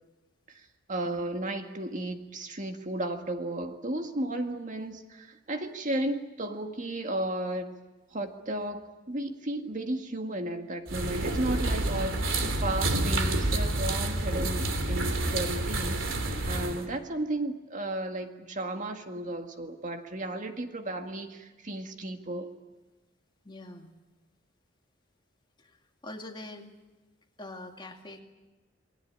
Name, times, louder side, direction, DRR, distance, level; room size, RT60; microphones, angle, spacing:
voice 1, 0.5-7.7 8.1-22.5, right 1 dB, 40° right, 5 dB, 1.9 m, -34 dB
sound 1, 10.9-16.8, right 2 dB, 90° right, 3.1 m, -29 dB
voice 2, 23.4-23.9 25.6-25.8 26.0-26.7 27.4-28.2, left 1 dB, 25° left, 2 dB, 2.5 m, -43 dB
28.0 x 21.0 x 8.8 m, 1.2 s
head